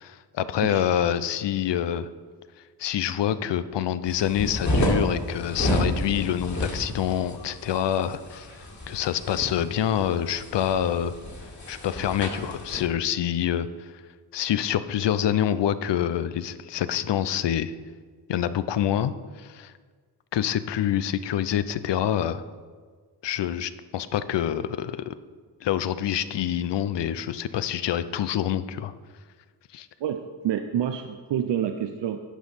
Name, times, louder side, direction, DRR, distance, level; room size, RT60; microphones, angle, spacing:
voice 1, 0.0-2.1 2.8-8.5 8.9-11.1 11.7-13.9 14.3-17.7 18.3-19.7 20.3-22.4 23.2-25.1 25.6-28.9 29.7-29.9, left 10 dB, 75° left, 14 dB, 0.6 m, -26 dB
sound 1, 4.1-12.8, left 1 dB, 40° left, 2.3 m, -30 dB
voice 2, 30.0-32.2, right 9 dB, 85° right, 7 dB, 0.6 m, -28 dB
9.9 x 5.2 x 5.7 m, 1.5 s
cardioid pair, 75°, 42 cm